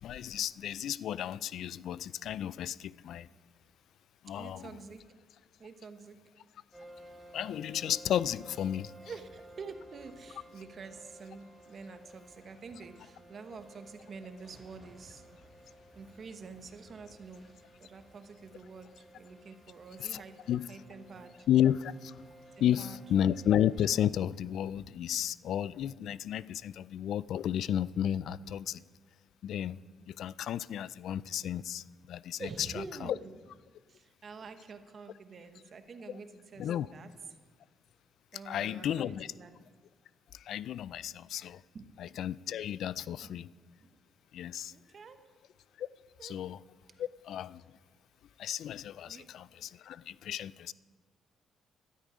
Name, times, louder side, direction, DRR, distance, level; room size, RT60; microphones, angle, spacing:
voice 1, 0.0-3.3 4.2-4.7 7.3-8.9 20.0-20.2 20.5-20.7 21.5-22.2 22.6-28.8 29.4-29.8 30.1-33.2 36.1-36.2 36.6-36.9 38.5-39.3 40.3-41.6 42.0-43.5 44.3-44.7 45.8-45.9 46.2-46.6 47.0-47.6 48.4-50.7, left 10 dB, 75° left, 0.3 m, -32 dB
voice 2, 4.4-5.1 5.6-6.2 9.0-15.2 15.9-17.5 17.8-20.4 20.7-21.5 22.6-23.0 32.4-33.3 33.9-37.1 38.3-39.5 41.7-41.9 43.8-43.9 44.7-45.2 46.2-46.4 49.1-49.3, right 4 dB, 50° right, 1.1 m, -47 dB
sound 1, 6.7-23.9, right 1 dB, 5° right, 2.2 m, -55 dB
13.5 x 12.5 x 5.1 m
cardioid pair, 90°, 0 cm